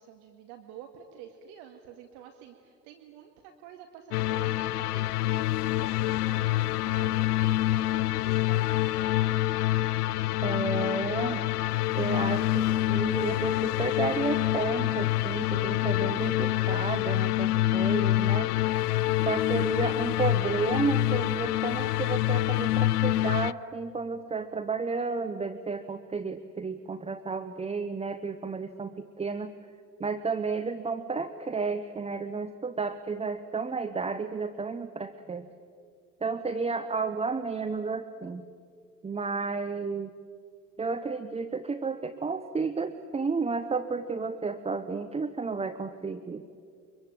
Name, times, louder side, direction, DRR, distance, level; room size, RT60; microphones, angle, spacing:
voice 1, 0.0-9.3, right 8 dB, 55° right, 4 dB, 2.1 m, -49 dB
sound 1, 4.1-23.5, left 15 dB, 70° left, 0.6 m, -26 dB
voice 2, 10.4-11.4 11.9-18.5 19.2-29.5 30.0-35.5 36.2-38.4 39.0-40.1 40.8-46.5, right 4 dB, 15° right, 11 dB, 0.9 m, -32 dB
24.5 x 23.0 x 9.3 m, 2.3 s
figure-of-eight pair, 70°, 47 cm